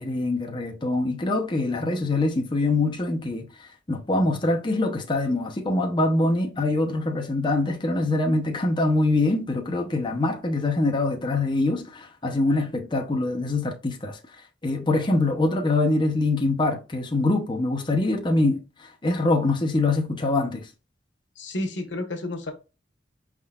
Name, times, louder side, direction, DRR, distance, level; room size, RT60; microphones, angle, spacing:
voice 1, 0.0-14.2 14.6-20.7, left 2 dB, 25° left, 0.7 m, -24 dB
voice 2, 21.3-22.5, left 1 dB, 85° left, 1.0 m, -31 dB
5.3 x 3.6 x 2.3 m
head